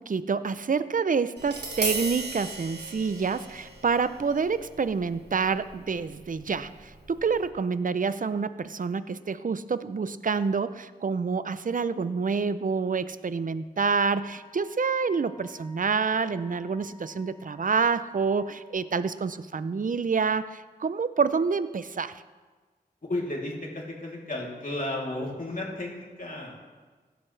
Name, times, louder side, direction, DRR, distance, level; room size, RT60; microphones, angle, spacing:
voice 1, 0.0-22.2, right 5 dB, 50° right, 14 dB, 0.5 m, -27 dB
Tap, 1.4-7.5, right 3 dB, 75° right, 1.8 m, -37 dB
Wind instrument woodwind instrument, 14.0-18.8, left 1 dB, 25° left, 2.9 m, -53 dB
voice 2, 23.1-26.5, left 1 dB, 50° left, -3 dB, 3.1 m, -33 dB
16.0 x 11.5 x 3.3 m, 1.4 s
wide cardioid pair, 55°, 17 cm